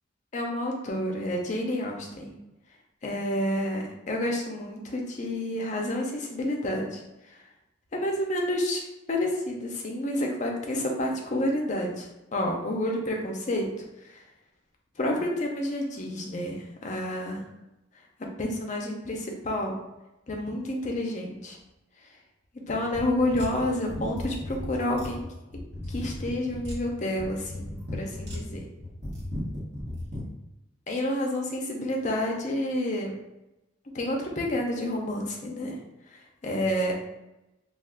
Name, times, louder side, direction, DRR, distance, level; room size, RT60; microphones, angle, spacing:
voice 1, 0.3-2.3 3.0-7.0 7.9-13.7 14.0-14.2 15.0-17.4 18.4-19.8 20.3-21.6 22.7-25.2 25.9-28.7 30.9-33.1 33.9-35.8 36.1-36.9, left 1 dB, 40° left, 0 dB, 0.5 m, -29 dB
sound 1, 22.9-30.3, left 1 dB, 65° right, 1.1 m, -36 dB
2.3 x 2.3 x 3.5 m, 0.96 s
head